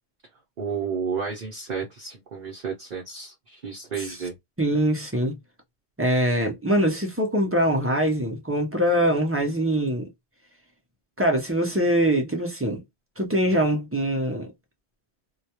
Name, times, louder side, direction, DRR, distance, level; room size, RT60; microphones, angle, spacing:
voice 1, 0.6-4.3 13.5-13.6, right 6 dB, 55° right, 0.8 m, -32 dB
voice 2, 4.6-5.4 6.0-10.1 11.2-12.8 13.2-14.5, equal, 15° right, 0.5 m, -23 dB
2.2 x 2.2 x 2.8 m
omnidirectional pair, 1.1 m